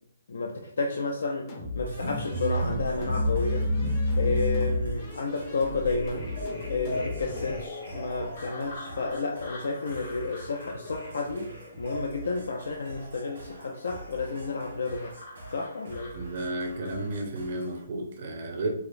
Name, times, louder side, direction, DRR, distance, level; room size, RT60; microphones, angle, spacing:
voice 1, 0.3-3.7 4.2-6.2 6.7-15.2 15.5-16.2, left 3 dB, 75° left, 2 dB, 0.4 m, -31 dB
sound 1, 1.5-7.7, left 2 dB, 25° left, 0.5 m, -39 dB
sound 2, 1.9-17.9, right 2 dB, 75° right, 1.2 m, -46 dB
sound 3, 2.0-17.2, left 1 dB, 60° left, 1.2 m, -34 dB
voice 2, 16.1-18.7, right 1 dB, 40° right, 2 dB, 0.6 m, -32 dB
4.8 x 2.0 x 2.5 m, 0.75 s
hypercardioid pair, 170°, 0 cm